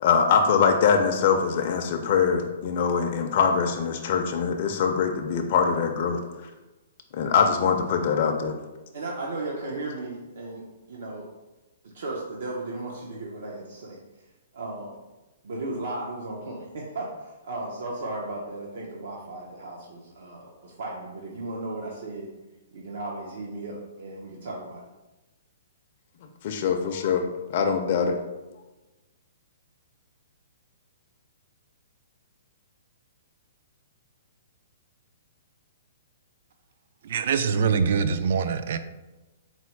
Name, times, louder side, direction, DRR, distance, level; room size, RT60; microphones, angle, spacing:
voice 1, 0.0-6.2 7.1-8.6 26.4-28.2, left 6 dB, 40° left, 3 dB, 0.4 m, -23 dB
voice 2, 8.9-11.3 11.8-14.0 14.5-15.0 15.4-22.3 22.7-24.8, right 2 dB, 70° right, -2 dB, 0.7 m, -35 dB
voice 3, 37.0-38.8, right 6 dB, 55° right, 11 dB, 0.3 m, -24 dB
4.2 x 2.1 x 4.4 m, 1.1 s
hypercardioid pair, 165°, 0 cm